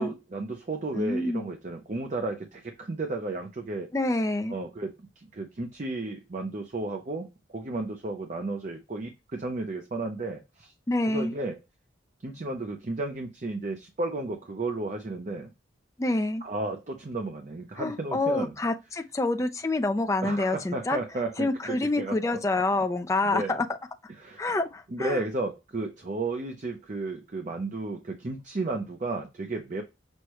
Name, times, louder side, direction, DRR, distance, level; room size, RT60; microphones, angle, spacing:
voice 1, 0.0-3.9 4.5-10.7 11.1-11.6 12.2-15.5 16.4-18.5 20.2-22.4 23.2-23.5 24.2-24.4 24.9-29.8, right 2 dB, 40° right, 0.5 m, -33 dB
voice 2, 0.9-1.5 3.9-4.6 10.9-11.4 16.0-16.4 17.8-21.0 21.4-23.7 24.4-25.2, left 2 dB, 15° left, 0.3 m, -27 dB
6.2 x 2.1 x 2.9 m
head